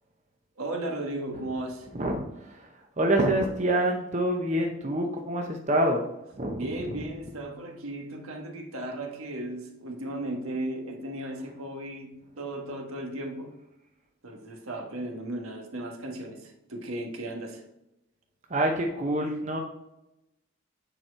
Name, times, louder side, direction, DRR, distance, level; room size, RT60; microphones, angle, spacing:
voice 1, 0.6-1.9 6.5-13.6 14.2-17.6, right 1 dB, 80° right, 2 dB, 1.5 m, -35 dB
voice 2, 1.9-6.1 6.3-6.6 18.5-19.6, right 1 dB, 35° right, 2 dB, 0.7 m, -26 dB
9.2 x 4.5 x 4.5 m, 0.89 s
head